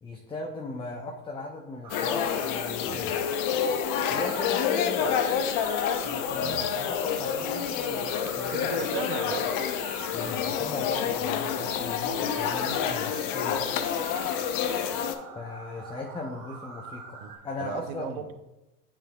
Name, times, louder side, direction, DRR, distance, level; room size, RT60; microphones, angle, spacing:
voice 1, 0.0-3.2 4.1-5.2 6.0-8.7 10.1-13.8 15.3-18.2, left 3 dB, 15° left, 1 dB, 0.5 m, -38 dB
sound 1, 1.8-17.4, right 3 dB, 55° right, 1.6 m, -45 dB
sound 2, 1.9-15.1, left 8 dB, 50° left, 0.7 m, -28 dB
voice 2, 8.5-9.5 17.2-17.3 17.6-18.3, right 8 dB, 70° right, 9 dB, 0.8 m, -36 dB
9.1 x 4.7 x 2.3 m, 1.0 s
supercardioid pair, 105°, 41 cm